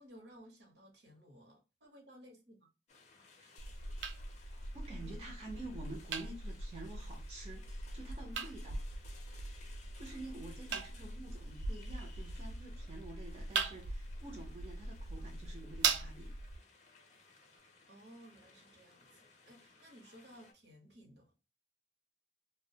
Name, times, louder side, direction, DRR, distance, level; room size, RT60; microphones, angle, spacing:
voice 1, 0.0-2.7 4.9-5.5 17.9-21.3, equal, 70° right, 0.8 m, -58 dB
sound 1, 2.9-20.5, left 4 dB, 40° left, 0.5 m, -61 dB
sound 2, 3.6-16.6, right 4 dB, 90° right, 0.4 m, -40 dB
voice 2, 4.5-8.8 10.0-16.4, right 2 dB, 35° right, 0.5 m, -49 dB
2.3 x 2.1 x 2.6 m
head